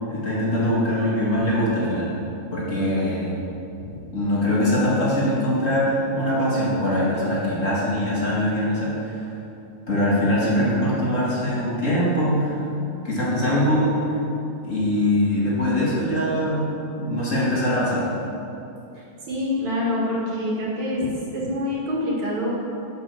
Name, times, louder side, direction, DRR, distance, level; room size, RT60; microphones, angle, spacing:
voice 1, 0.0-2.1 2.5-3.4 4.1-9.3 9.9-12.7 13.0-14.1 14.6-16.7 17.0-18.0, left 1 dB, 35° left, -7 dB, 1.3 m, -22 dB
voice 2, 19.3-21.1 21.3-22.5, left 1 dB, 50° right, -5 dB, 2.8 m, -25 dB
11.0 x 7.2 x 6.9 m, 2.9 s
omnidirectional pair, 4.8 m